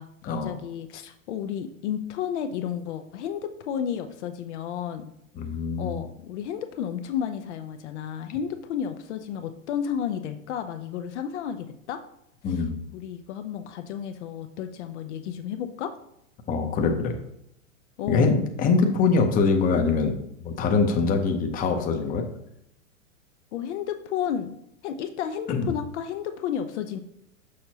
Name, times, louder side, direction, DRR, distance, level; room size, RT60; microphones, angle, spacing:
voice 1, 0.4-5.1 5.8-12.0 12.5-12.6 12.9-15.9 18.0-18.4 23.5-24.5 24.8-27.0, left 9 dB, 60° left, 8 dB, 0.6 m, -32 dB
voice 2, 5.4-6.1 12.4-12.8 16.5-17.2 18.1-22.3 25.5-25.7, left 4 dB, 20° left, 4 dB, 0.8 m, -23 dB
6.4 x 5.3 x 2.9 m, 0.76 s
hypercardioid pair, 125°, 39 cm